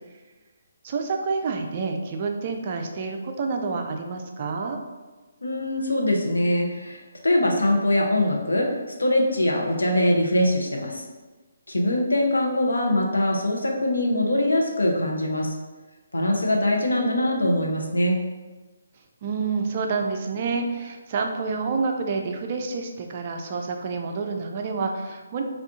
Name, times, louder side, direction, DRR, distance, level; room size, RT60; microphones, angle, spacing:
voice 1, 0.8-4.8 19.2-25.4, right 4 dB, 35° right, 3 dB, 0.3 m, -28 dB
voice 2, 5.4-11.0 11.7-15.5 16.1-18.2, left 1 dB, 70° left, 0 dB, 0.7 m, -23 dB
3.6 x 2.4 x 3.5 m, 1.2 s
figure-of-eight pair, 140°, 0 cm